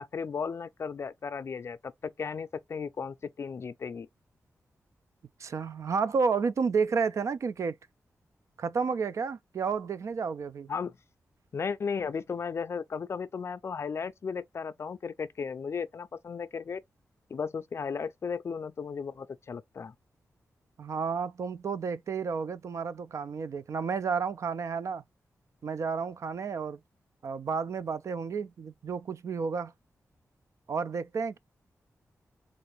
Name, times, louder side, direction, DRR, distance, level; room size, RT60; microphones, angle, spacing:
voice 1, 0.0-4.1 10.7-11.0 11.5-16.8 17.3-19.9, left 6 dB, 50° left, 0.4 m, -35 dB
voice 2, 5.4-7.8 8.6-10.7 20.8-25.0 25.6-26.8 27.2-29.7 30.7-31.4, right 5 dB, 60° right, 0.3 m, -31 dB
3.8 x 2.5 x 3.2 m
wide cardioid pair, 135°, 6 cm